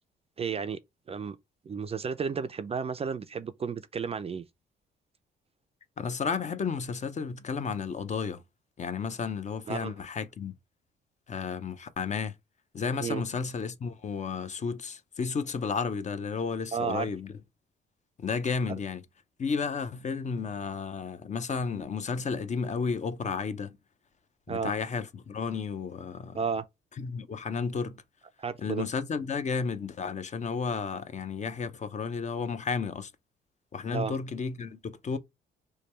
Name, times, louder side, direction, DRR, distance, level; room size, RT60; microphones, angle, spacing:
voice 1, 0.4-0.8 1.1-1.4 1.7-4.4 9.7-9.9 13.0-13.2 16.7-17.1 24.5-24.7 26.3-26.6 28.4-28.9 33.9-34.1, right 6 dB, 30° right, 0.4 m, -32 dB
voice 2, 6.0-8.4 8.8-10.6 11.3-12.3 12.7-17.3 18.2-19.0 19.4-23.8 24.5-26.4 27.0-28.0 28.6-33.1 33.7-35.2, left 5 dB, 35° left, 0.5 m, -32 dB
3.2 x 2.2 x 4.2 m
cardioid pair, 90°, 20 cm